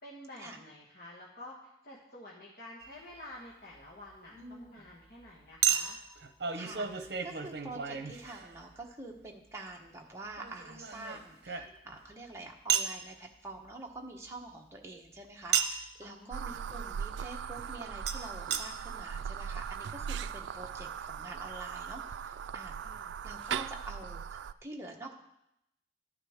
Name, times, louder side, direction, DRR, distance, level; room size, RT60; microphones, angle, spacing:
voice 1, 0.0-6.0 16.0-16.6 22.8-23.2, left 1 dB, 55° left, -5 dB, 1.6 m, -50 dB
Chink clink, 2.8-3.0 5.6-8.8 10.4-12.1 12.7-13.0 15.5-15.9 18.1-18.2 18.5-18.6 19.3-19.4 19.5-19.6, right 8 dB, 65° right, 0.8 m, -32 dB
voice 2, 4.3-4.7 6.5-25.1, right 2 dB, 15° right, 0 dB, 1.1 m, -46 dB
sound 1, 16.3-24.5, right 7 dB, 90° right, 0.3 m, -39 dB
11.5 x 9.5 x 3.6 m, 0.84 s
head